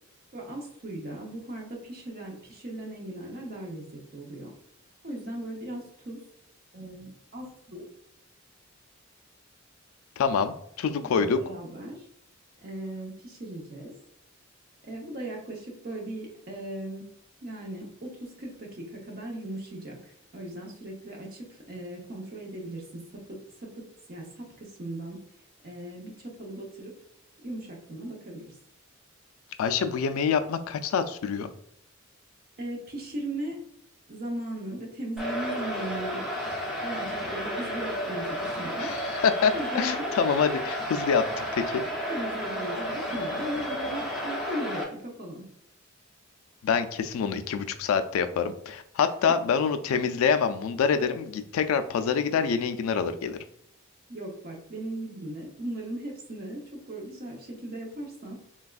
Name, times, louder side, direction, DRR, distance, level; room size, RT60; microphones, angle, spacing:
voice 1, 0.3-3.9 4.1-4.5 5.0-6.2 6.7-7.9 11.0-12.1 12.6-13.9 14.9-17.1 17.4-23.0 23.3-23.4 23.8-25.2 25.6-26.9 27.4-28.6 32.6-33.6 34.1-36.2 36.8-38.9 39.5-40.1 42.1-45.4 54.1-58.4, right 1 dB, 50° right, -1 dB, 0.8 m, -38 dB
voice 2, 10.2-11.4 29.6-31.5 38.8-41.2 41.5-41.8 46.6-53.4, left 6 dB, 85° left, 9 dB, 0.3 m, -26 dB
sound 1, 35.2-44.8, equal, ahead, 0.5 m, -32 dB
3.3 x 2.3 x 2.3 m, 0.73 s
head